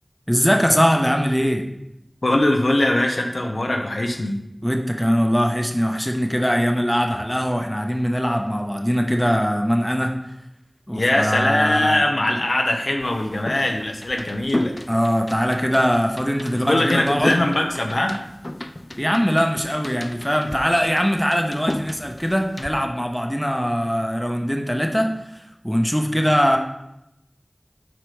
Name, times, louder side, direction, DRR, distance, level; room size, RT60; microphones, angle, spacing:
voice 1, 0.3-1.6 4.6-10.1 10.9-12.0 14.9-17.4 19.0-26.6, equal, 5° left, 3 dB, 0.8 m, -21 dB
voice 2, 2.2-4.4 10.9-14.8 16.5-18.2, left 1 dB, 85° left, 2 dB, 0.7 m, -21 dB
sound 1, 13.0-22.7, left 1 dB, 40° left, 0.4 m, -33 dB
7.8 x 4.9 x 3.3 m, 0.84 s
wide cardioid pair, 45°, 0 cm